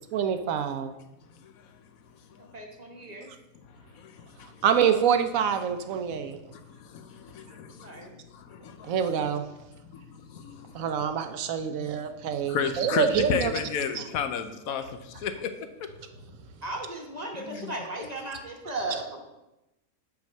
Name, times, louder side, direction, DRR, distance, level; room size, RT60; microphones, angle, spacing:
voice 1, 0.1-0.9 4.6-6.4 8.9-9.5 10.7-13.5 14.0-14.1, right 8 dB, 75° right, 1.0 m, -26 dB
voice 2, 2.4-3.3 7.7-8.2 16.6-19.2, right 2 dB, 30° right, 1.0 m, -36 dB
voice 3, 3.9-4.6 6.5-8.1 8.3-9.1 9.8-10.9 11.6-11.9 12.3-15.5 15.8-15.9 17.4-17.8, left 7 dB, 80° left, 1.1 m, -34 dB
5.9 x 4.9 x 6.4 m
omnidirectional pair, 1.5 m